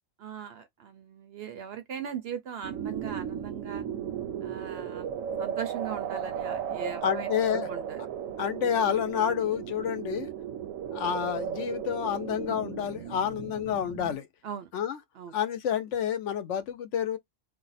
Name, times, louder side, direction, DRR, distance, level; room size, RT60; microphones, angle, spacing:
voice 1, 0.2-3.9 4.4-5.1 5.4-8.0 14.4-14.7 15.1-15.3, right 8 dB, 65° right, 0.7 m, -39 dB
sound 1, 2.6-14.2, right 8 dB, 80° right, 1.0 m, -35 dB
voice 2, 7.0-7.7 8.4-10.3 10.9-14.3 14.7-15.0 15.3-17.2, left 9 dB, 70° left, 0.9 m, -29 dB
2.5 x 2.1 x 4.0 m
omnidirectional pair, 1.3 m